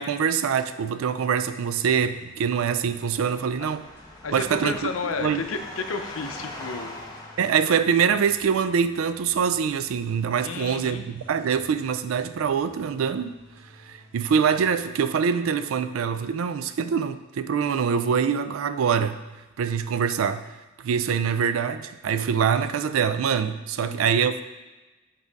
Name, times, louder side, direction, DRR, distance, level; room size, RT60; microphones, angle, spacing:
voice 1, 0.0-3.9 4.3-4.8 5.2-5.5 7.4-13.4 13.9-19.2 19.6-20.4 20.8-24.5, right 7 dB, 85° right, 12 dB, 0.4 m, -24 dB
sound 1, 1.0-14.8, right 1 dB, 10° right, 0.9 m, -54 dB
sound 2, 2.1-8.5, left 1 dB, 20° left, 0.7 m, -43 dB
voice 2, 4.2-6.9 10.4-11.0 23.8-24.0, left 4 dB, 80° left, 7 dB, 0.6 m, -32 dB
7.2 x 3.7 x 4.0 m, 1.1 s
head